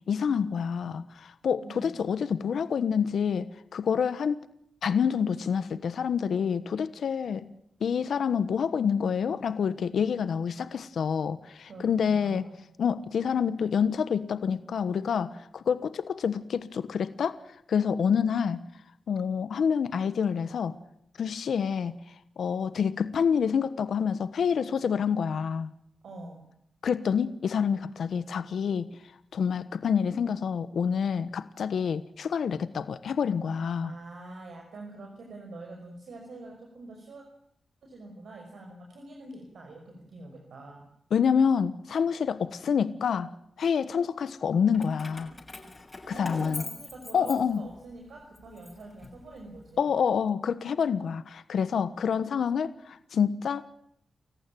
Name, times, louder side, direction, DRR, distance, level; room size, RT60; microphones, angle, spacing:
voice 1, 0.1-4.4 4.8-7.5 7.8-12.5 12.8-17.4 17.7-18.6 19.1-20.8 21.2-22.0 22.4-25.7 26.8-28.9 29.3-33.9 41.1-43.3 43.6-45.3 46.1-46.6 47.1-47.7 49.8-53.6, left 7 dB, 80° left, 13 dB, 1.2 m, -27 dB
voice 2, 1.6-2.0 11.7-12.6 26.0-26.4 33.8-37.2 37.8-40.8 46.1-49.9, right 2 dB, 80° right, 1 dB, 5.8 m, -45 dB
Keys jangling, 44.7-47.9 48.4-49.6, left 2 dB, 35° left, 6.7 m, -42 dB
29.5 x 15.0 x 9.2 m, 0.72 s
cardioid pair, 50°, 0 cm